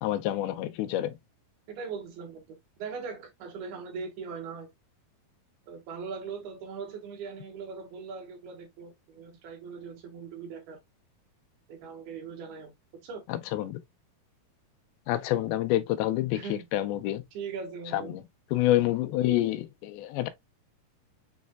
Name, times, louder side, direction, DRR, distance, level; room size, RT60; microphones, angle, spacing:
voice 1, 0.0-1.1 13.5-13.8 15.1-16.4 16.7-17.2 17.9-18.2 18.5-20.3, left 14 dB, 80° left, 2.5 m, -27 dB
voice 2, 1.7-2.4 2.8-4.7 5.7-10.8 11.7-12.7 13.0-13.2 16.3-16.7 17.3-18.1, right 5 dB, 80° right, 3.4 m, -40 dB
7.3 x 3.2 x 2.2 m
omnidirectional pair, 4.4 m